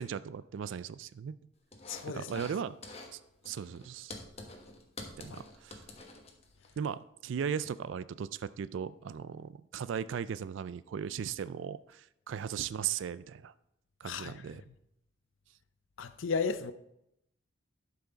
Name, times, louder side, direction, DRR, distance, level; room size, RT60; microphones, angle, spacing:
voice 1, 0.0-1.4 2.1-2.7 3.1-3.2 3.4-4.1 5.2-5.8 6.8-13.5 14.0-14.6, right 7 dB, 70° right, 0.3 m, -37 dB
sound 1, 1.7-2.6 2.8-3.1 3.4-6.7, left 2 dB, 30° left, 1.1 m, -47 dB
voice 2, 1.9-2.4 14.0-14.4 16.0-16.7, left 5 dB, 75° left, 0.5 m, -34 dB
11.5 x 5.7 x 4.0 m
head